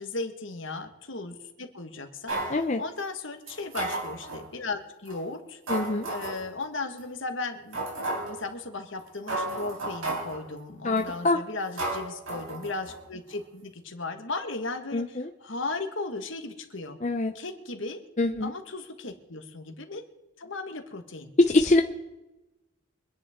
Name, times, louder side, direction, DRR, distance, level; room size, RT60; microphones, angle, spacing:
voice 1, 0.0-5.6 6.1-7.8 8.2-15.0 15.4-17.0 17.3-18.0 18.4-20.0 20.4-21.3, left 3 dB, 70° left, 6 dB, 1.6 m, -36 dB
sound 1, 2.3-2.6 3.5-4.4 5.0-5.2 5.7-6.5 7.0-7.1 7.7-8.4 9.0-9.1 9.3-10.4 11.0-11.2 11.8-13.0 13.3-13.4, right 2 dB, 80° right, 4.2 m, -33 dB
voice 2, 2.5-2.8 5.7-6.1 10.8-11.4 14.9-15.3 17.0-17.3 18.2-18.5 21.4-21.8, left 2 dB, 35° left, 4 dB, 0.7 m, -24 dB
25.0 x 10.5 x 3.7 m, 1.0 s
head